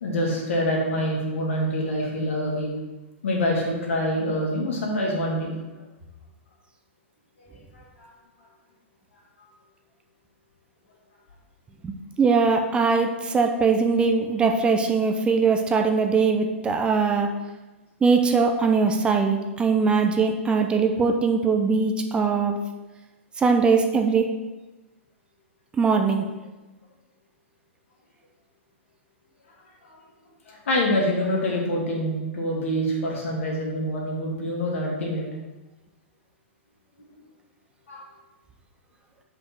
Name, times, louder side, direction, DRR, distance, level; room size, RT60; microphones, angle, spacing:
voice 1, 0.0-2.7 3.2-5.5 7.5-8.1 29.9-30.0 30.5-35.2 37.9-38.0, equal, 75° left, -3 dB, 2.5 m, -26 dB
voice 2, 11.8-17.3 18.0-22.6 23.4-24.3 25.8-26.2, right 4 dB, 15° right, 4 dB, 0.5 m, -21 dB
5.3 x 4.7 x 6.0 m, 1.1 s
hypercardioid pair, 135°, 7 cm